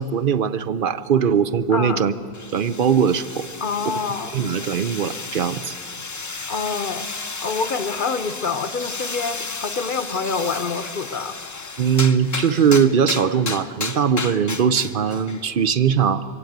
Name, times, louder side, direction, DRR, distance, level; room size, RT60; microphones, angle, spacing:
voice 1, 0.0-2.1 2.5-3.5 4.3-5.7 11.8-16.2, right 7 dB, 60° right, 13 dB, 0.8 m, -20 dB
voice 2, 1.7-2.0 3.6-4.4 6.5-7.1 7.4-11.4, left 5 dB, 55° left, 11 dB, 0.9 m, -26 dB
sound 1, 2.3-15.5, left 4 dB, 25° left, 0.4 m, -33 dB
23.5 x 15.5 x 9.2 m, 2.6 s
omnidirectional pair, 1.0 m